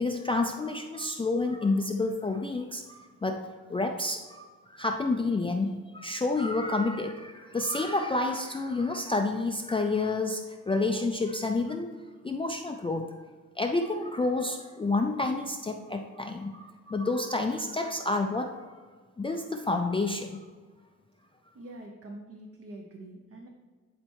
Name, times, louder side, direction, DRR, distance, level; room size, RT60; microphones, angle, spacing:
voice 1, 0.0-11.9 12.2-13.2 13.6-18.8 19.2-20.4, left 2 dB, 15° left, 3 dB, 0.4 m, -29 dB
voice 2, 21.5-23.5, right 1 dB, 45° right, 2 dB, 0.8 m, -45 dB
11.0 x 4.3 x 4.6 m, 1.5 s
wide cardioid pair, 160°, 32 cm